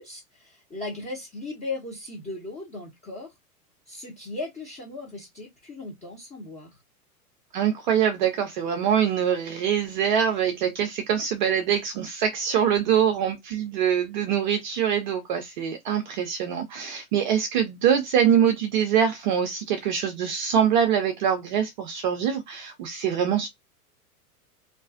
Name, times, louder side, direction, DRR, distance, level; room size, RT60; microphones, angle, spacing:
voice 1, 0.0-3.3 3.9-6.8, left 2 dB, 15° left, 0.7 m, -37 dB
voice 2, 7.5-23.5, right 8 dB, 35° right, 0.4 m, -24 dB
2.5 x 2.3 x 2.4 m
figure-of-eight pair, 100°, 45 cm